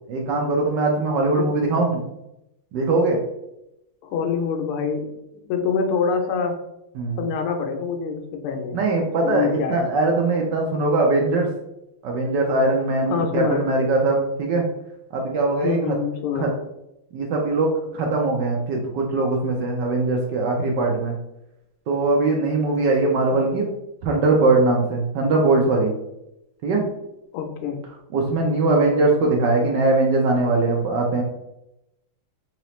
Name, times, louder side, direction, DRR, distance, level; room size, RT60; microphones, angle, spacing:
voice 1, 0.1-2.0 2.7-3.2 7.0-7.2 8.7-11.5 12.0-14.6 15.1-15.9 16.4-16.5 17.1-21.2 21.9-23.7 24.0-25.9 26.6-26.8 28.1-31.2, right 3 dB, 70° right, 0 dB, 1.1 m, -21 dB
voice 2, 4.0-5.2 5.5-6.6 7.2-8.8 9.2-9.8 13.1-13.7 15.6-16.5 23.3-23.7 27.3-27.8, left 5 dB, 85° left, 4 dB, 1.5 m, -25 dB
3.8 x 3.0 x 3.0 m, 0.86 s
omnidirectional pair, 2.4 m